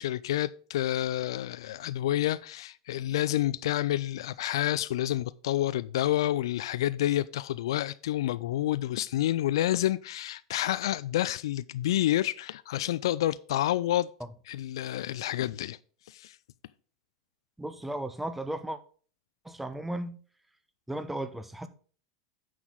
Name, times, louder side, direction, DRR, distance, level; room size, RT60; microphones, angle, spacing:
voice 1, 0.0-14.1 14.5-15.8 16.1-16.4, left 13 dB, 60° left, 0.3 m, -29 dB
voice 2, 17.6-18.8 19.4-20.2 20.9-21.7, right 1 dB, 5° right, 0.8 m, -35 dB
9.4 x 6.1 x 3.8 m
figure-of-eight pair, 90°, 3 cm